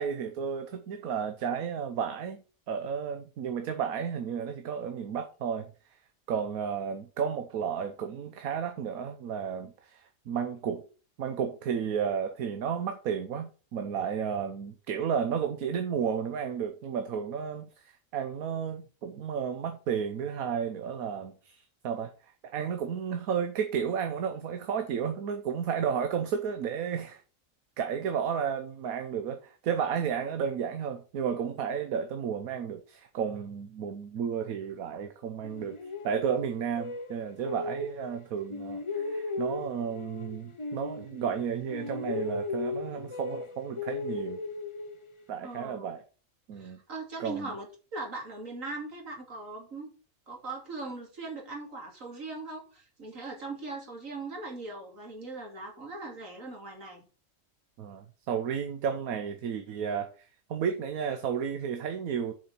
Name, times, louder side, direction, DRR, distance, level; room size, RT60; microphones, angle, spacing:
voice 1, 0.0-5.7 6.3-10.8 11.2-17.7 18.1-27.2 27.8-35.8 36.0-44.4 45.3-46.0 46.5-46.8 47.2-47.5 57.8-60.1 60.5-62.3, right 7 dB, 80° right, 1.3 m, -32 dB
sound 1, 35.4-38.2 38.5-41.4 41.7-45.2, left 3 dB, 35° left, 0.5 m, -37 dB
voice 2, 45.4-45.9 46.6-49.9 50.3-57.0, right 3 dB, 65° right, 3.0 m, -40 dB
6.9 x 5.6 x 5.7 m
omnidirectional pair, 1.5 m